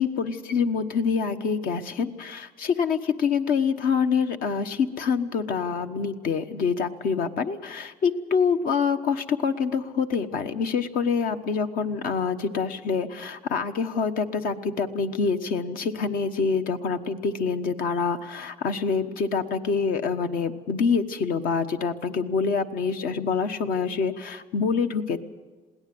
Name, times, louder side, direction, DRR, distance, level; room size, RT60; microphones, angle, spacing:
voice 1, 0.0-25.2, left 5 dB, 75° left, 7 dB, 1.2 m, -26 dB
21.5 x 17.0 x 7.8 m, 1.3 s
cardioid pair, 115°, 15 cm